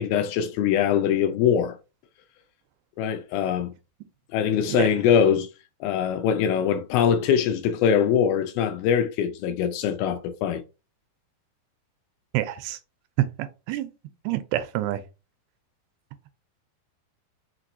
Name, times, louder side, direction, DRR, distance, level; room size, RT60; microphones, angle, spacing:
voice 1, 0.0-1.8 3.0-3.7 4.3-5.5 5.8-10.6, left 8 dB, 80° left, 2.3 m, -22 dB
voice 2, 12.3-12.8 13.4-13.9 14.3-15.0, right 14 dB, 90° right, 2.5 m, -28 dB
5.8 x 2.9 x 2.6 m
omnidirectional pair, 4.5 m